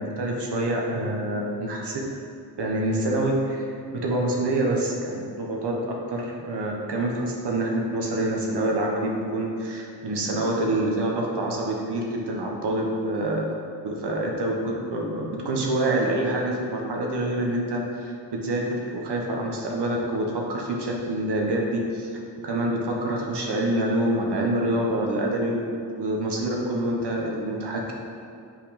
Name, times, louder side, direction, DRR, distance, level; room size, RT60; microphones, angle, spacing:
voice 1, 0.0-2.0 2.6-5.7 6.1-13.5 13.8-14.6 14.9-22.1 22.4-25.6 26.0-27.9, right 1 dB, 65° right, -1 dB, 1.3 m, -26 dB
6.0 x 4.7 x 5.2 m, 2.4 s
cardioid pair, 60°, 44 cm